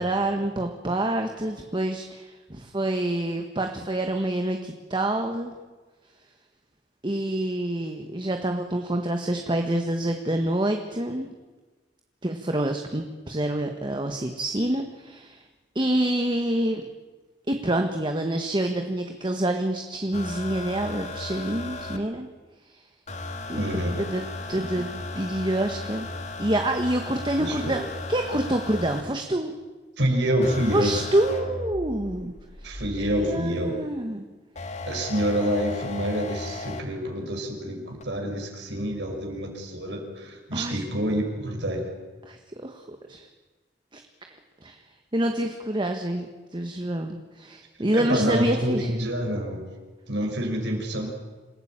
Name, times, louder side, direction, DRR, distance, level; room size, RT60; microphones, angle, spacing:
voice 1, 0.0-5.5 7.0-11.3 12.2-15.4 15.7-16.8 17.5-22.3 22.7-22.8 23.5-23.7 24.0-26.1 26.4-27.8 28.1-29.5 30.7-32.3 32.6-32.7 33.1-34.2 40.5-40.8 42.2-43.3 43.9-44.0 44.6-44.8 45.1-48.9, right 1 dB, 25° right, 4 dB, 1.5 m, -27 dB
sound 1, 20.1-22.0 23.1-29.0 30.4-33.4 34.6-36.8 38.0-38.1, left 2 dB, 40° left, 2.1 m, -36 dB
voice 2, 23.6-24.0 24.7-24.8 27.4-27.8 30.0-30.9 32.6-33.8 34.8-41.9 47.9-49.6 50.1-51.1, equal, 75° right, 2 dB, 5.8 m, -27 dB
27.0 x 16.0 x 8.9 m, 1.3 s
head